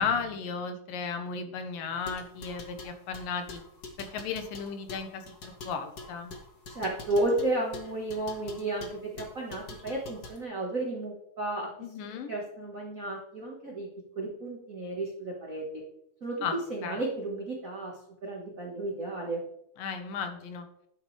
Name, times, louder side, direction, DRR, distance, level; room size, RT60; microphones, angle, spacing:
voice 1, 0.0-3.6 4.0-6.3 11.8-12.3 16.4-16.5 16.8-17.0 19.8-20.7, left 6 dB, 75° left, 6 dB, 2.7 m, -34 dB
sound 1, 1.9-10.4, left 2 dB, 55° left, 1.0 m, -45 dB
voice 2, 6.7-11.7 12.3-13.9 14.1-15.8 16.2-17.9 18.2-19.4, right 2 dB, 75° right, -1 dB, 0.7 m, -33 dB
12.0 x 10.0 x 3.3 m, 0.75 s
omnidirectional pair, 4.2 m